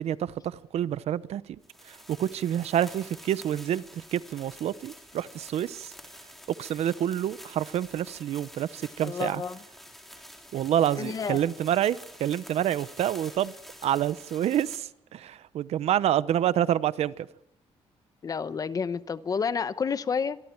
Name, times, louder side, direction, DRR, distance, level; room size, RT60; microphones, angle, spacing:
voice 1, 0.0-1.4 1.9-5.9 6.6-9.4 10.5-13.5 13.8-17.3, right 11 dB, 70° right, 0.8 m, -28 dB
sound 1, 1.6-14.8, equal, ahead, 3.7 m, -48 dB
voice 2, 9.0-9.6 11.0-11.4 18.2-20.4, left 6 dB, 35° left, 0.9 m, -30 dB
25.5 x 23.0 x 4.6 m
cardioid pair, 150°, 11 cm